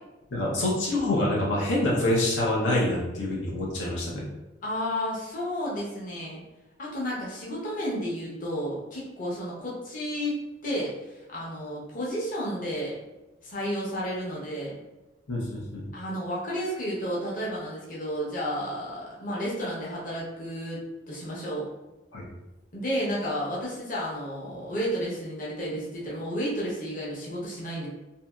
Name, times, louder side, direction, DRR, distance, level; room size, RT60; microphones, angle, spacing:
voice 1, 0.3-4.3 15.3-15.8 22.1-22.3, left 1 dB, 85° left, -4 dB, 0.7 m, -26 dB
voice 2, 4.6-6.4 6.8-10.4 10.6-10.9 11.3-13.0 13.4-14.8 15.9-21.6 22.7-27.9, equal, 45° left, -6 dB, 0.8 m, -32 dB
2.7 x 2.6 x 2.3 m, 1.0 s
head